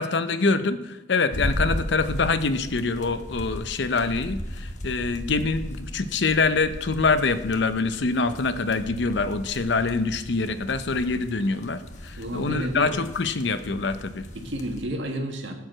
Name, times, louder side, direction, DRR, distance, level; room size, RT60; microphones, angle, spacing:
voice 1, 0.0-14.2, left 3 dB, 65° left, 11 dB, 0.7 m, -25 dB
sound 1, 1.3-14.8, equal, 40° left, 1.2 m, -36 dB
voice 2, 12.1-13.0 14.3-15.5, right 1 dB, 75° right, 3 dB, 1.7 m, -31 dB
12.0 x 4.7 x 7.8 m, 0.96 s
head